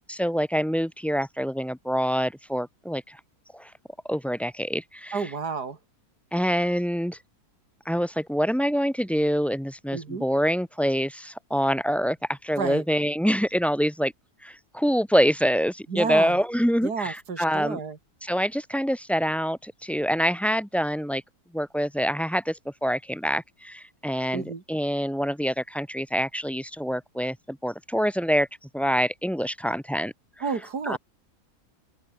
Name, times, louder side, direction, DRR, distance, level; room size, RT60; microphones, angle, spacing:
voice 1, 0.0-3.2 3.5-3.7 4.1-5.2 6.3-7.2 7.8-14.1 14.4-17.8 18.2-21.2 21.5-28.5 28.7-30.1 30.8-31.0, equal, ahead, 1.1 m, -26 dB
voice 2, 5.1-5.8 9.9-10.2 12.6-12.8 15.9-16.4 16.8-18.0 24.3-24.6 30.4-31.0, right 5 dB, 80° right, 3.2 m, -30 dB
open air
omnidirectional pair, 1.7 m